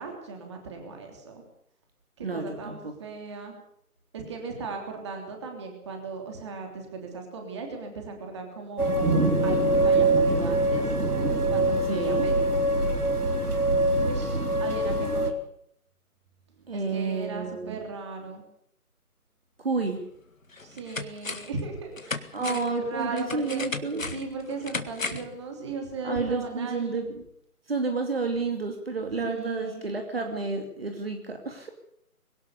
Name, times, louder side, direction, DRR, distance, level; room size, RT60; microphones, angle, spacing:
voice 1, 0.0-1.4 2.2-3.5 4.1-10.9 11.5-12.6 14.0-15.4 16.7-18.4 20.6-23.6 24.0-27.0 29.2-29.8, right 4 dB, 20° right, 3 dB, 3.2 m, -37 dB
voice 2, 2.2-2.9 11.9-12.3 16.7-17.8 19.6-20.0 22.3-24.0 26.0-27.2 27.7-31.7, right 4 dB, 40° right, 5 dB, 2.6 m, -30 dB
sound 1, 8.8-15.3, right 2 dB, 80° right, 3.4 m, -23 dB
sound 2, 20.0-20.1 20.5-21.6 22.0-25.4 25.7-25.8, left 3 dB, 60° left, 1.9 m, -36 dB
22.0 x 18.0 x 6.8 m, 0.69 s
figure-of-eight pair, 160°, 45 cm